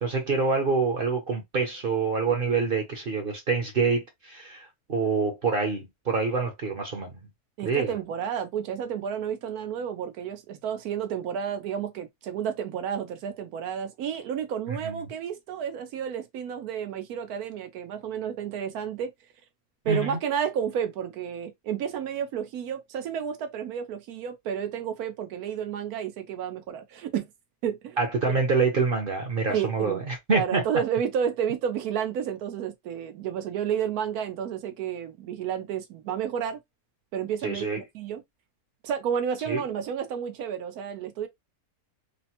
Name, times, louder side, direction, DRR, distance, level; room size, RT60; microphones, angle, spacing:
voice 1, 0.0-7.2 7.6-7.9 14.8-15.0 19.9-20.2 28.0-30.6 37.4-37.8 39.5-39.6, right 4 dB, 45° right, 0.8 m, -26 dB
voice 2, 7.6-19.1 19.8-27.3 27.6-28.0 28.3-28.4 29.5-30.0 30.3-36.6 37.1-37.7 37.9-38.2 38.8-41.3, right 8 dB, 90° right, 1.2 m, -31 dB
3.2 x 2.1 x 2.8 m
omnidirectional pair, 1.6 m